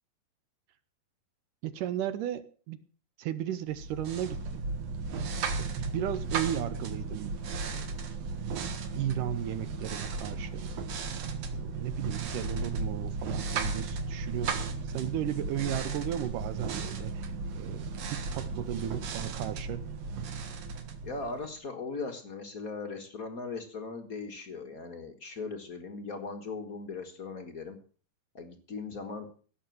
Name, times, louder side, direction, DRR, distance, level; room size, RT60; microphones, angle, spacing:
voice 1, 1.6-2.8 3.2-4.6 5.6-7.9 9.0-10.7 11.5-19.8, right 11 dB, 75° right, 13 dB, 2.2 m, -35 dB
sound 1, 3.7-21.6, right 4 dB, 55° right, 2.3 m, -35 dB
voice 2, 21.0-27.8 28.3-29.3, left 4 dB, 60° left, 5 dB, 0.8 m, -39 dB
17.0 x 7.0 x 7.8 m, 0.42 s
omnidirectional pair, 4.2 m